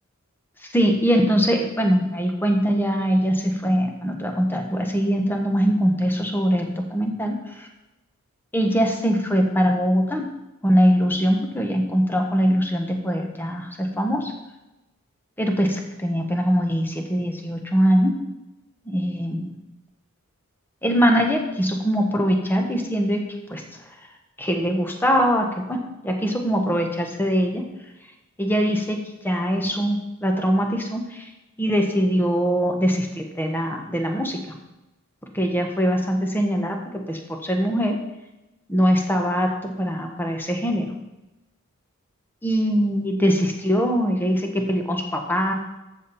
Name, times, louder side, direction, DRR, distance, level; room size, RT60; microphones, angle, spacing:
voice 1, 0.7-7.7 8.5-10.3 10.6-14.3 15.4-18.2 18.8-19.5 20.8-23.6 24.4-27.6 28.4-31.3 31.6-34.4 35.3-38.0 38.7-40.9 42.4-45.5, equal, 10° left, 3 dB, 1.2 m, -22 dB
13.5 x 7.3 x 4.2 m, 0.99 s
head